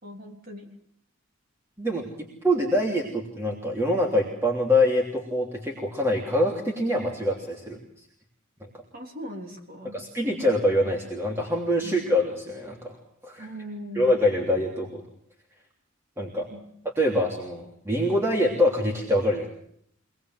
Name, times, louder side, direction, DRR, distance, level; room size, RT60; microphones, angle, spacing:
voice 1, 0.0-0.7 8.9-10.0 11.8-12.0 13.4-14.1 16.5-16.7, equal, 50° right, 2 dB, 3.5 m, -39 dB
voice 2, 1.8-8.1 9.9-13.0 13.2-13.5 13.9-15.0 16.2-16.5 17.0-19.5, left 1 dB, 15° right, -1 dB, 3.2 m, -25 dB
25.5 x 19.0 x 7.8 m, 0.69 s
head